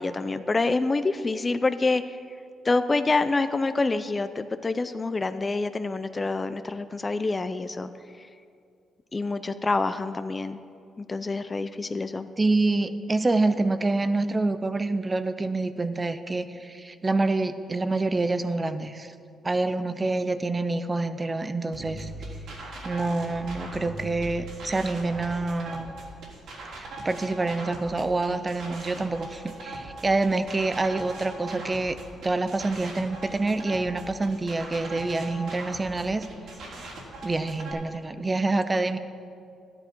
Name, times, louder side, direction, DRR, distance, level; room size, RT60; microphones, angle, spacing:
voice 1, 0.0-2.2 2.6-7.9 9.1-10.6 11.0-12.3, left 3 dB, 25° left, 11 dB, 0.5 m, -27 dB
voice 2, 12.4-19.1 19.4-22.1 22.8-25.9 26.7-32.0 32.2-36.3 37.2-39.0, right 2 dB, 25° right, 11 dB, 0.6 m, -27 dB
sound 1, 21.7-37.7, right 2 dB, 80° right, 3.5 m, -40 dB
12.0 x 10.5 x 4.6 m, 2.4 s
cardioid pair, 90°, 0 cm